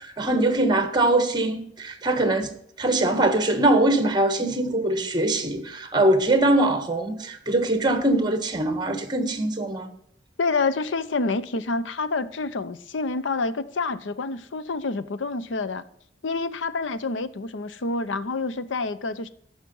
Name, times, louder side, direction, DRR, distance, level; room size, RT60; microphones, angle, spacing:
voice 1, 0.0-2.5 2.8-9.9, right 1 dB, 25° right, 1.3 m, -22 dB
voice 2, 10.4-15.8 16.2-19.3, left 3 dB, 85° left, 0.7 m, -28 dB
13.5 x 5.8 x 5.4 m
head